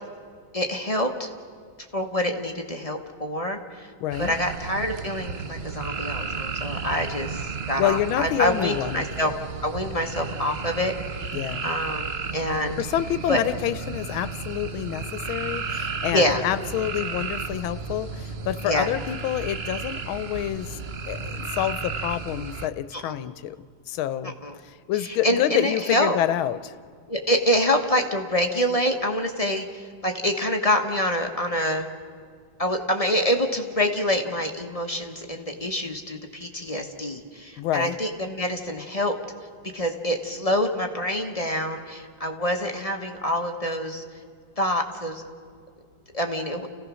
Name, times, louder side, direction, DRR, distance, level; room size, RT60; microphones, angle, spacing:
voice 1, 0.5-1.3 1.9-3.9 4.2-9.3 9.6-11.3 11.6-12.8 13.3-13.4 16.1-16.4 18.6-18.9 22.9-23.3 24.2-24.6 25.0-26.2 27.1-31.9 32.6-39.1 39.7-44.0 44.6-45.2 46.1-46.7, equal, 20° left, 3 dB, 1.0 m, -26 dB
voice 2, 4.0-4.3 7.8-9.1 11.3-11.7 12.8-23.6 23.9-24.3 24.9-26.7 37.6-38.0, left 12 dB, 90° left, 13 dB, 1.5 m, -27 dB
sound 1, 4.1-22.7, right 5 dB, 55° right, 0.7 m, -33 dB
29.0 x 16.5 x 6.3 m, 2.1 s
omnidirectional pair, 2.2 m